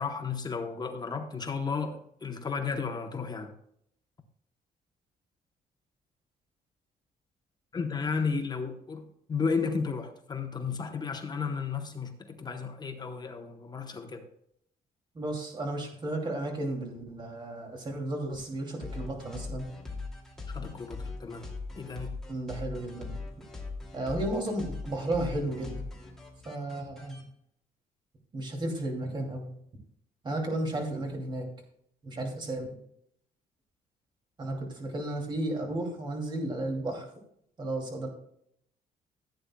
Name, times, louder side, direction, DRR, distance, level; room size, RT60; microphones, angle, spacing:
voice 1, 0.0-3.5 7.7-14.2 20.5-21.5 21.8-22.1, left 5 dB, 25° left, 0.9 m, -33 dB
voice 2, 15.1-19.7 22.3-23.1 23.9-25.9 26.4-27.2 28.3-29.5 30.2-31.5 32.0-32.8 34.4-37.1 37.6-38.1, right 1 dB, 30° right, 2.6 m, -33 dB
sound 1, 18.8-27.2, left 3 dB, 5° left, 2.4 m, -40 dB
15.5 x 8.7 x 2.3 m
cardioid pair, 160°, 16 cm